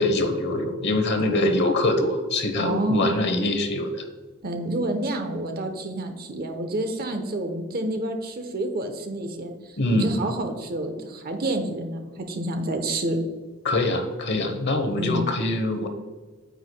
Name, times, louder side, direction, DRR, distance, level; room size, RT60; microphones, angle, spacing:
voice 1, 0.0-4.0 9.8-10.1 13.6-15.9, left 2 dB, 55° left, 6 dB, 1.0 m, -24 dB
voice 2, 1.2-1.7 2.6-3.2 4.4-12.0 12.3-13.2 15.0-15.2, right 1 dB, 50° right, 6 dB, 0.9 m, -28 dB
9.2 x 8.4 x 2.2 m, 1.3 s
head